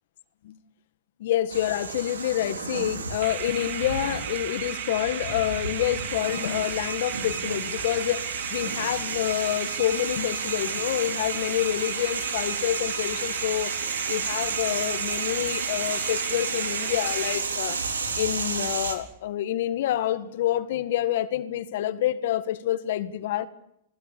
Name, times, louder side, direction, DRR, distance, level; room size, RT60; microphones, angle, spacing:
voice 1, 1.2-8.2 8.5-13.7 14.1-17.8 18.2-23.5, left 12 dB, 65° left, 1.7 m, -27 dB
sound 1, 1.5-18.9, right 4 dB, 90° right, 4.0 m, -32 dB
sound 2, 3.2-17.9, right 9 dB, 55° right, 3.4 m, -36 dB
29.0 x 20.0 x 7.1 m
hypercardioid pair, 115°, 0 cm